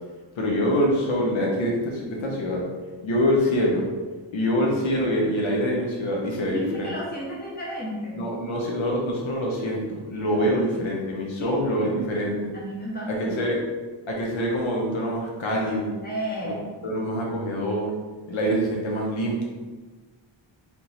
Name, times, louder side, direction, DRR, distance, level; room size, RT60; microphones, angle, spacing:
voice 1, 0.4-2.7 3.0-3.9 4.3-6.9 8.1-12.5 13.1-13.6 14.1-15.9 16.4-16.5 16.8-17.9 18.3-19.4, equal, 75° left, -2 dB, 0.9 m, -25 dB
voice 2, 6.4-8.2 10.3-10.8 11.4-11.9 12.5-13.3 16.0-16.7, equal, 20° left, -6 dB, 1.2 m, -33 dB
3.5 x 2.9 x 4.0 m, 1.4 s
wide cardioid pair, 140°, 47 cm